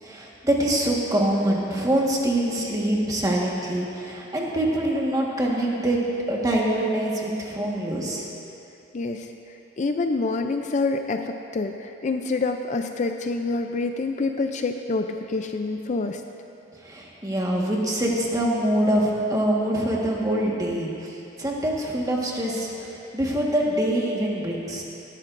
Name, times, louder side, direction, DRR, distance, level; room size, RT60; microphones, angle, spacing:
voice 1, 0.0-6.0 6.3-8.2 16.8-24.8, right 1 dB, 20° right, -3 dB, 1.5 m, -24 dB
voice 2, 8.9-9.3 9.8-16.2, left 3 dB, 40° left, 5 dB, 0.4 m, -27 dB
18.0 x 13.0 x 2.6 m, 2.7 s
head